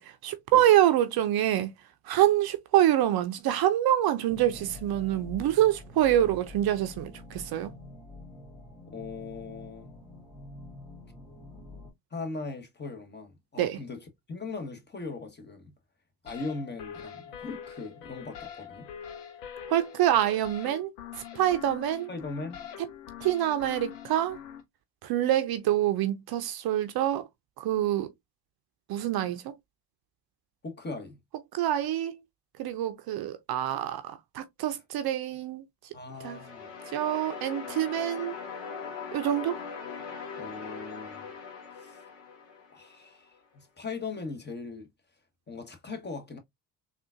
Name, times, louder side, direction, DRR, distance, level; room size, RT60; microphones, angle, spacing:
voice 1, 0.0-1.7 2.0-7.7 13.6-13.8 19.7-22.1 23.2-24.4 25.0-27.3 27.6-28.1 28.9-29.5 31.5-32.1 32.6-35.6 36.2-36.4 36.9-38.3 39.1-39.6, right 12 dB, 50° right, 0.6 m, -26 dB
sound 1, 4.3-11.9, left 2 dB, 5° right, 1.7 m, -46 dB
voice 2, 8.9-10.0 12.1-15.7 16.2-18.9 22.1-22.6 30.6-31.2 35.9-36.7 40.4-41.3 41.8-42.0 42.7-44.9 45.5-46.4, left 3 dB, 20° left, 1.0 m, -39 dB
sound 2, 16.3-24.6, left 9 dB, 90° left, 0.7 m, -44 dB
sound 3, 36.1-43.1, left 6 dB, 65° left, 1.1 m, -41 dB
3.7 x 2.4 x 2.4 m
hypercardioid pair, 55°, 47 cm